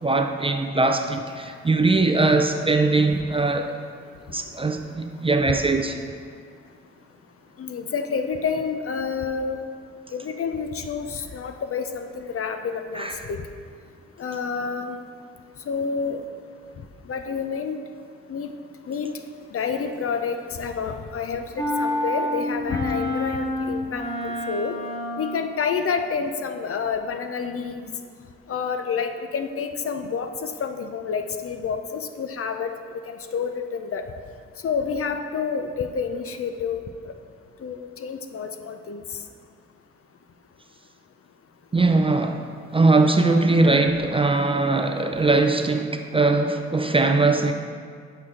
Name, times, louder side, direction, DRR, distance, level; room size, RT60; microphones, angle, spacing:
voice 1, 0.0-3.7 4.3-6.0 12.9-13.1 41.7-47.5, right 3 dB, 20° right, 5 dB, 0.4 m, -21 dB
voice 2, 7.6-9.6 10.1-13.4 14.2-15.0 15.7-16.2 17.1-17.8 18.3-18.5 18.9-19.1 19.5-24.8 25.2-27.9 28.5-32.7 33.1-34.0 34.6-36.8 37.0-37.1 37.6-39.0, left 5 dB, 50° left, 7 dB, 0.5 m, -29 dB
sound 1, 21.6-25.5, left 1 dB, 15° left, 1.5 m, -28 dB
7.8 x 4.4 x 3.7 m, 2.1 s
cardioid pair, 65°, 30 cm